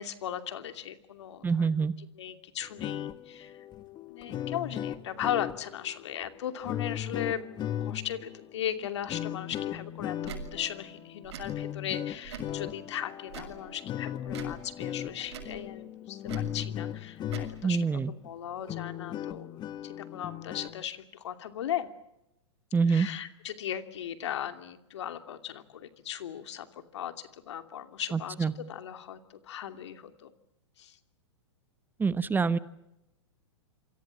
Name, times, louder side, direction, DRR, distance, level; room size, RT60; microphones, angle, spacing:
voice 1, 0.0-1.9 2.2-3.6 4.1-21.9 22.9-26.7 26.9-30.3 30.8-31.0, left 10 dB, 70° left, 8 dB, 2.7 m, -37 dB
voice 2, 1.4-1.9 17.6-18.1 22.7-23.1 28.1-28.5 32.0-32.6, right 5 dB, 10° right, 15 dB, 1.0 m, -26 dB
sound 1, 2.6-17.8 18.2-18.3 18.6-20.8, left 11 dB, 30° left, 1.4 m, -37 dB
Tick / Tick-tock, 10.2-10.4 11.2-11.5 12.2-12.6 13.3-13.6 14.3-14.6 15.3-15.6 16.3-16.5 17.2-17.5, right 7 dB, 65° right, 6.9 m, -42 dB
27.5 x 24.5 x 7.4 m, 0.89 s
hypercardioid pair, 115°, 15 cm